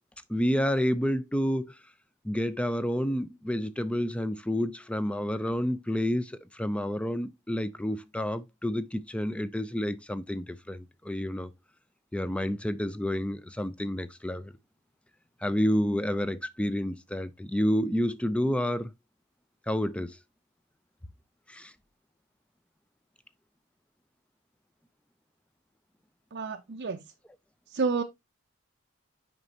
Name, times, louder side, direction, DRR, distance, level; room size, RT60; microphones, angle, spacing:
voice 1, 0.3-1.8 2.2-11.5 12.1-14.5 15.4-18.9 19.7-20.2 21.5-21.7, equal, 5° left, 0.4 m, -29 dB
voice 2, 26.3-27.0 27.7-28.0, right 4 dB, 50° right, 0.5 m, -29 dB
7.9 x 5.3 x 2.7 m
head